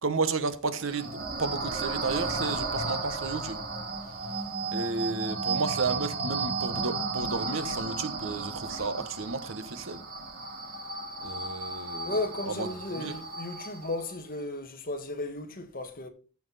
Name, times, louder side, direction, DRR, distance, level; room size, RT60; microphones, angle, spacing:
voice 1, 0.0-3.6 4.7-10.0 11.2-12.2 12.5-12.7 13.0-13.1, right 4 dB, 60° right, 1.1 m, -32 dB
sound 1, 0.7-14.2, right 3 dB, 45° right, 3.3 m, -34 dB
voice 2, 12.0-16.1, left 2 dB, 40° left, 1.6 m, -35 dB
14.5 x 6.0 x 4.1 m
head